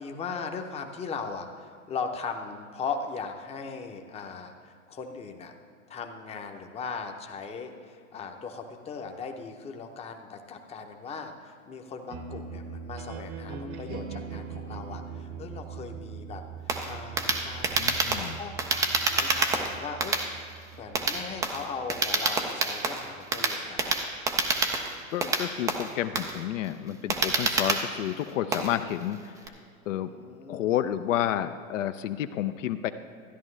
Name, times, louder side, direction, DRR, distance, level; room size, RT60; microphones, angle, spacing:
voice 1, 0.0-5.5 5.9-16.4 16.8-18.1 18.4-20.2 20.7-23.9 29.9-30.7, left 5 dB, 15° left, 4 dB, 0.7 m, -38 dB
sound 1, 12.1-22.2, right 6 dB, 55° right, 1.1 m, -41 dB
sound 2, 16.7-29.5, right 3 dB, 10° right, 0.3 m, -28 dB
voice 2, 17.8-18.4 25.1-29.3 29.9-30.1 30.5-32.9, left 11 dB, 65° left, 10 dB, 0.6 m, -30 dB
13.0 x 10.5 x 3.2 m, 2.3 s
hypercardioid pair, 115°, 41 cm